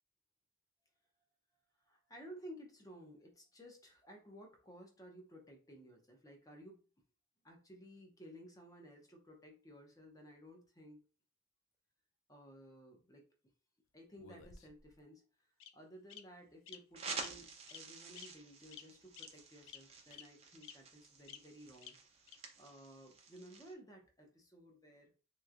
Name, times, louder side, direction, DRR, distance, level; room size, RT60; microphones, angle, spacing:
voice 1, 1.8-6.8 7.4-11.0 12.3-13.3 13.9-25.1, equal, 15° left, 2 dB, 0.6 m, -56 dB
Bird vocalization bird call bird song, 14.2-14.9 15.6-15.7 16.1-16.2 16.7-16.8 17.2-17.3 17.7-17.8 18.1-18.3 18.7-18.8 19.2-19.3 19.7-19.8 20.1-20.2 20.6-20.7 21.3-21.4 21.8-21.9 22.3-22.4, left 9 dB, 60° left, 0.4 m, -51 dB
sound 1, 16.9-23.7, right 4 dB, 30° right, 0.5 m, -49 dB
3.1 x 3.0 x 2.4 m, 0.36 s
head